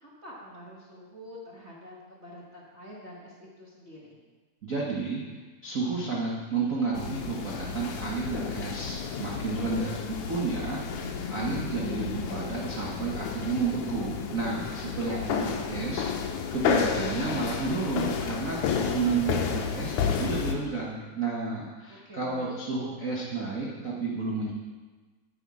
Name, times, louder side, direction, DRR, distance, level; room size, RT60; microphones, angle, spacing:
voice 1, 0.0-4.2 9.5-10.1 14.8-15.5 21.9-22.8, equal, 50° right, -5 dB, 0.8 m, -46 dB
voice 2, 4.6-5.2 5.6-24.5, right 4 dB, 90° right, -4 dB, 0.7 m, -31 dB
sound 1, 6.9-20.5, left 6 dB, 75° left, 2.2 m, -31 dB
9.4 x 8.2 x 4.8 m, 1.3 s
omnidirectional pair, 3.6 m